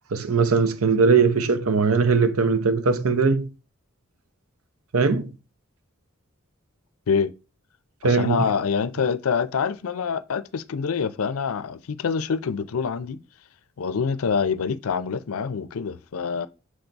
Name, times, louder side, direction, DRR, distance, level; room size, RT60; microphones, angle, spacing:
voice 1, 0.1-3.5 4.9-5.4 8.0-8.5, right 4 dB, 75° right, 0.7 m, -20 dB
voice 2, 8.0-13.2 13.8-16.5, left 6 dB, 75° left, 0.5 m, -26 dB
6.4 x 4.0 x 4.5 m
head